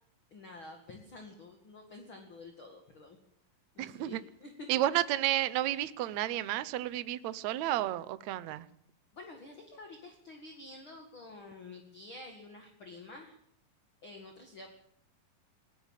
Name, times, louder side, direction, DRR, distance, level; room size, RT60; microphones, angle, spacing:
voice 1, 0.3-3.2 3.7-4.7 4.9-5.1 9.1-13.4 14.0-14.7, left 2 dB, 40° left, 3 dB, 2.6 m, -49 dB
voice 2, 3.8-4.2 4.7-8.7, right 14 dB, 65° right, 14 dB, 1.9 m, -31 dB
20.0 x 18.5 x 7.5 m, 0.67 s
omnidirectional pair, 4.1 m